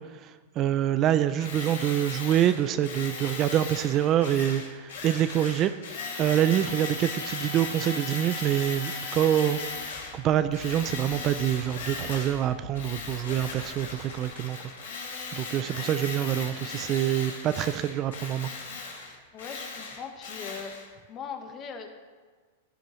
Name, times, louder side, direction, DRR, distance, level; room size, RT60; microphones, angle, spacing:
voice 1, 0.0-5.7 6.2-9.6 10.1-14.6 15.3-18.5, right 11 dB, 30° right, 11 dB, 0.4 m, -26 dB
Tools, 1.4-10.2 10.5-12.5 12.7-20.8, left 4 dB, 85° left, 2.4 m, -37 dB
sound 1, 9.5-14.3, left 5 dB, 60° left, 2.0 m, -49 dB
voice 2, 19.3-20.7 21.1-21.9, left 6 dB, 30° left, 5 dB, 1.2 m, -39 dB
15.5 x 10.5 x 3.1 m, 1.5 s
supercardioid pair, 145°, 0 cm